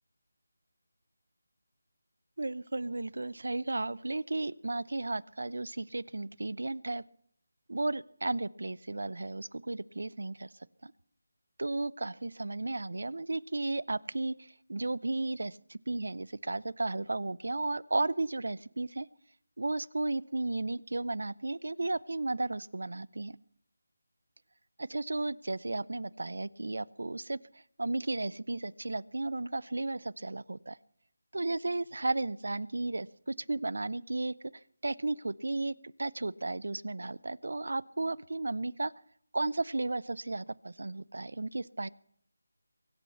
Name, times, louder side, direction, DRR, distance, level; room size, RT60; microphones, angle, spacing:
voice 1, 2.4-7.0 7.7-10.5 10.8-10.9 11.6-14.3 14.7-19.1 19.6-23.4 24.8-27.4 27.8-30.8 31.3-34.3 34.8-38.9 39.3-41.9, right 2 dB, 75° right, 22 dB, 0.6 m, -34 dB
23.5 x 8.7 x 5.7 m, 0.62 s
figure-of-eight pair, 170°, 0 cm